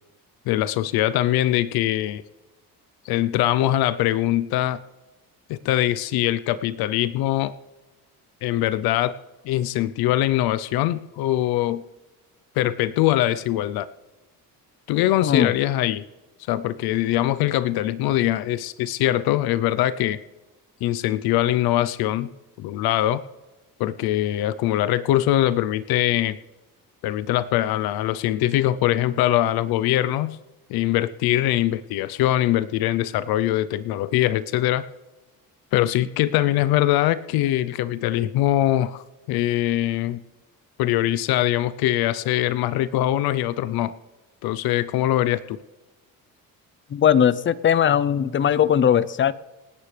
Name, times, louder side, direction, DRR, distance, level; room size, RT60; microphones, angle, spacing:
voice 1, 0.5-2.2 3.0-4.8 5.5-7.5 8.4-9.1 9.4-11.8 12.6-13.9 14.9-16.0 16.5-20.2 20.8-22.3 22.6-23.2 23.8-26.4 27.0-30.4 30.7-34.8 35.7-40.2 40.8-43.9 44.4-45.6, left 14 dB, 85° left, 0.7 m, -22 dB
voice 2, 15.2-15.5 46.9-49.3, left 9 dB, 35° left, 0.6 m, -19 dB
28.0 x 9.8 x 3.3 m
cardioid pair, 120°, 36 cm